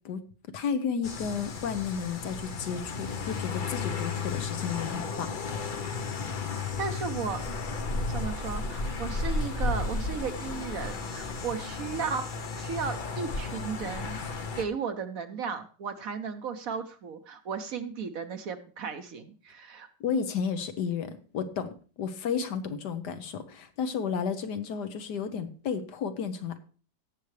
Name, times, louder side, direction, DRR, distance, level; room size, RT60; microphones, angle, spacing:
voice 1, 0.5-5.4 20.0-26.6, left 6 dB, 70° left, 9 dB, 1.5 m, -32 dB
sound 1, 1.0-14.6, left 4 dB, 45° left, 0.6 m, -33 dB
voice 2, 6.5-7.6 8.1-12.2 12.6-14.2 14.6-19.9, right 6 dB, 60° right, 9 dB, 1.1 m, -35 dB
17.0 x 6.9 x 3.2 m, 0.37 s
omnidirectional pair, 1.9 m